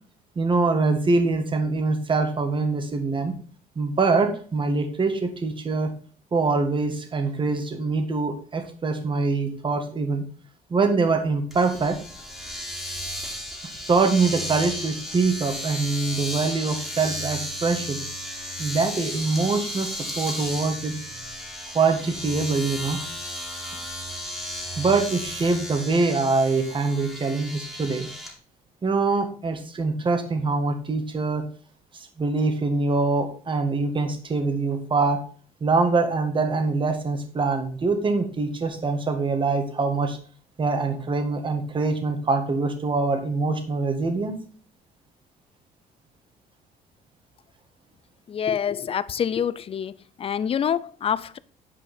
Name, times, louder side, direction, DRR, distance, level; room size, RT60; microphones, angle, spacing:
voice 1, 0.3-3.3 3.7-5.9 6.3-10.2 10.7-12.0 13.9-18.0 18.6-21.0 21.7-23.0 24.8-28.1 28.8-31.4 32.2-35.2 35.6-40.2 40.6-44.4, right 3 dB, 30° right, 1.6 m, -24 dB
Domestic sounds home sounds, 11.5-28.3, equal, ahead, 2.4 m, -34 dB
voice 2, 48.3-49.9 50.2-51.4, left 8 dB, 35° left, 0.4 m, -26 dB
8.9 x 5.0 x 5.1 m
cardioid pair, 110°, 17 cm